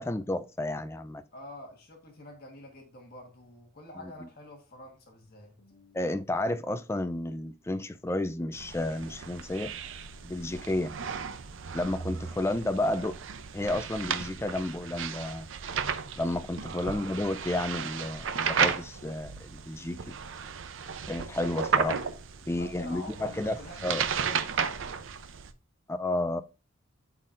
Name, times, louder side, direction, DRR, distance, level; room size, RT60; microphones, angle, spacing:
voice 1, 0.0-1.2 4.2-4.3 5.9-9.7 10.2-10.9 11.7-13.1 13.5-15.5 16.2-20.2 21.1-22.0 22.5-23.6 23.8-24.0 25.9-26.4, left 1 dB, 15° left, 0.3 m, -31 dB
voice 2, 1.3-6.0 12.9-13.1 16.8-17.0 22.5-25.0, left 1 dB, 50° left, 1.5 m, -47 dB
pasando hojas, 8.5-25.5, right 6 dB, 70° right, 0.6 m, -34 dB
12.5 x 4.1 x 2.5 m
head